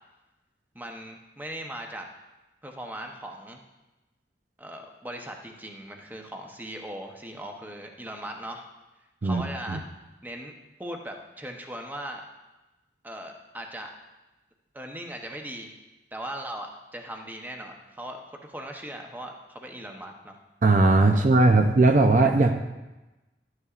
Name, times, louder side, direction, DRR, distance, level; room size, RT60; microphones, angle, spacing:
voice 1, 0.7-2.1 2.6-3.6 4.6-8.6 9.2-9.8 10.2-10.5 10.8-12.2 13.0-13.9 14.7-15.7 16.1-20.4 21.1-21.3, right 1 dB, 10° right, 2 dB, 0.8 m, -39 dB
voice 2, 20.6-22.6, right 2 dB, 45° right, 5 dB, 0.5 m, -19 dB
12.0 x 9.6 x 2.5 m, 1.1 s
head